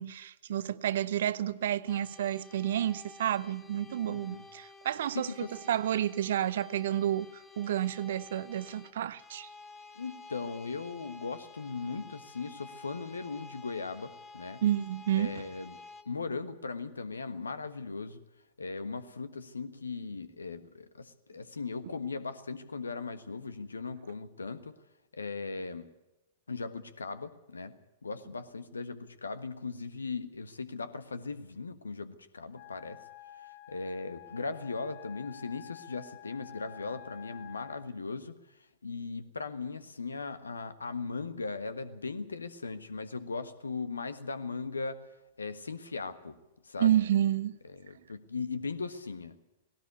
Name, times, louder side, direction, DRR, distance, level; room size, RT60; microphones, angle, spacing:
voice 1, 0.0-9.5 14.6-15.4 46.8-47.6, right 11 dB, 55° right, 0.8 m, -30 dB
sound 1, 1.9-16.0, left 3 dB, 15° left, 1.9 m, -51 dB
voice 2, 4.1-4.4 5.1-5.5 9.9-14.6 15.1-15.7 16.0-18.2 18.6-24.7 25.1-25.9 26.5-27.7 28.0-33.0 33.4-45.1 45.4-46.4 46.6-47.0 47.7-49.4, left 4 dB, 75° left, 1.4 m, -38 dB
Wind instrument woodwind instrument, 32.5-37.9, left 13 dB, 55° left, 2.1 m, -50 dB
18.5 x 18.0 x 8.3 m
figure-of-eight pair, 100°, 0 cm